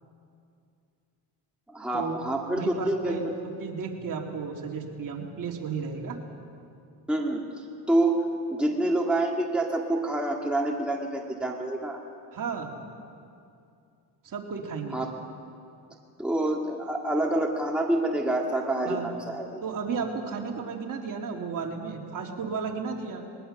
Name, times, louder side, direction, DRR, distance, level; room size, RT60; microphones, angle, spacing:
voice 1, 1.7-3.2 7.1-7.4 7.9-12.0 14.9-15.1 16.2-19.6, right 1 dB, ahead, -1 dB, 2.0 m, -27 dB
voice 2, 2.5-3.3 3.6-6.2 12.3-12.7 14.2-15.0 18.8-19.1 19.6-23.2, right 5 dB, 45° right, 1 dB, 2.7 m, -33 dB
21.0 x 19.0 x 6.7 m, 2.5 s
cardioid pair, 110°, 43 cm